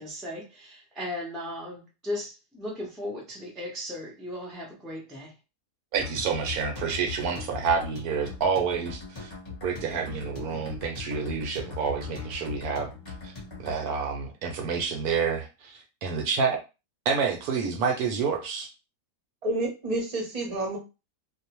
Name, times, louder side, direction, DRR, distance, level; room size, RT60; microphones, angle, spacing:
voice 1, 0.0-5.3, left 1 dB, ahead, -2 dB, 0.3 m, -36 dB
sound 1, 5.9-13.7, left 6 dB, 20° left, 0.8 m, -40 dB
voice 2, 5.9-9.3 9.6-12.9 13.6-15.7 16.0-16.6 17.1-18.7, right 6 dB, 75° right, 3 dB, 1.0 m, -28 dB
voice 3, 19.4-20.8, right 2 dB, 35° right, 0 dB, 0.6 m, -29 dB
2.6 x 2.1 x 2.9 m, 0.28 s
omnidirectional pair, 1.7 m